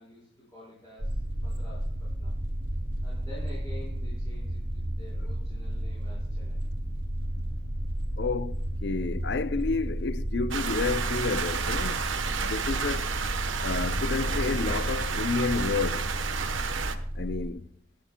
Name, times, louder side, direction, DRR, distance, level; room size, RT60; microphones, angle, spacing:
voice 1, 0.0-2.3 3.0-6.6, left 1 dB, 20° left, 5.0 m, -49 dB
sound 1, 1.0-17.5, equal, 45° right, 2.7 m, -33 dB
voice 2, 8.2-12.1 12.4-13.1 13.6-16.1 17.1-17.7, left 4 dB, 60° left, 0.5 m, -30 dB
sound 2, 10.5-17.0, right 5 dB, 90° right, 1.1 m, -31 dB
23.0 x 10.0 x 2.2 m
head